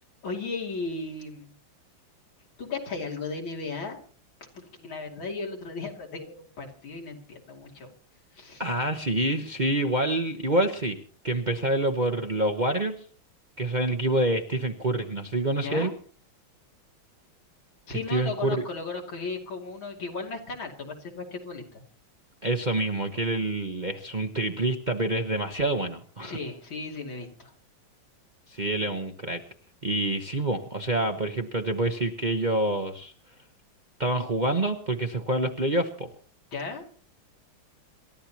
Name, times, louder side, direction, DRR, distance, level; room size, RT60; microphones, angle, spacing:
voice 1, 0.2-1.5 2.6-4.0 4.4-7.9 8.3-8.6 15.5-15.9 17.9-21.8 26.2-27.5 36.5-36.8, left 4 dB, 80° left, 1 dB, 3.6 m, -36 dB
voice 2, 8.6-11.0 11.2-13.0 13.6-15.9 18.1-18.6 22.4-26.3 28.5-29.4 29.8-33.1 34.0-36.1, right 2 dB, 30° right, 4 dB, 0.9 m, -27 dB
28.0 x 13.0 x 2.9 m, 0.42 s
omnidirectional pair, 2.2 m